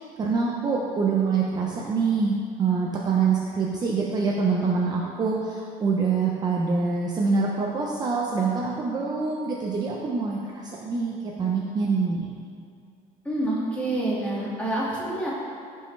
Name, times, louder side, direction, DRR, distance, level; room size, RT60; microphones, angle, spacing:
voice 1, 0.0-12.3, right 4 dB, 25° right, -3 dB, 0.7 m, -25 dB
voice 2, 13.2-15.3, right 1 dB, 10° left, -7 dB, 2.0 m, -27 dB
15.0 x 5.5 x 3.3 m, 2.3 s
cardioid pair, 170°, 15 cm